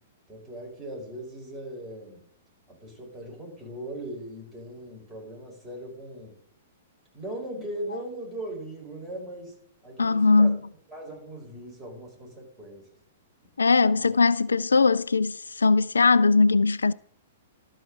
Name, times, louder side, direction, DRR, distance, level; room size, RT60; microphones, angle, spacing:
voice 1, 0.3-2.2 2.7-6.4 7.1-9.6 9.8-10.5 10.9-12.9 13.9-14.1, right 1 dB, 15° right, 5.3 m, -39 dB
voice 2, 10.0-10.6 13.6-16.9, left 4 dB, 70° left, 0.3 m, -20 dB
12.5 x 4.8 x 7.8 m
figure-of-eight pair, 110°, 0 cm